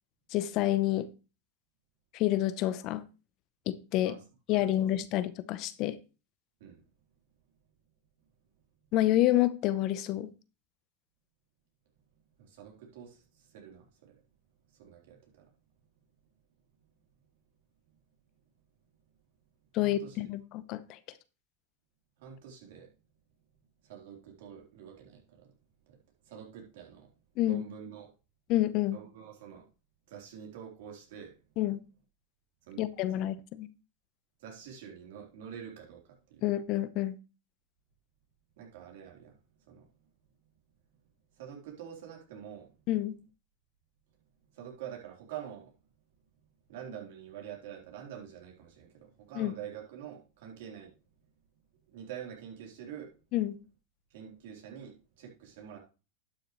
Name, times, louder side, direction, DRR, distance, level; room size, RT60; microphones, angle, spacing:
voice 1, 0.3-1.1 2.1-3.0 3.7-4.1 4.5-6.0 8.9-10.3 19.7-21.0 27.4-27.6 28.5-29.0 31.6-31.8 32.8-33.7 36.4-37.1 42.9-43.1 49.4-49.5 53.3-53.6, left 14 dB, 50° left, 0.7 m, -28 dB
voice 2, 4.5-4.9 6.6-6.8 12.4-14.2 14.7-15.5 17.9-18.0 19.8-20.3 22.2-22.9 23.8-25.5 25.9-26.0 26.2-27.1 27.4-28.1 28.9-29.6 30.1-31.4 32.6-32.8 33.1-33.3 34.4-36.5 38.6-39.9 41.4-42.9 44.5-45.7 46.7-50.9 51.9-53.2 54.1-55.8, right 8 dB, 70° right, 3.6 m, -46 dB
11.5 x 6.6 x 3.2 m
hypercardioid pair, 110°, 0 cm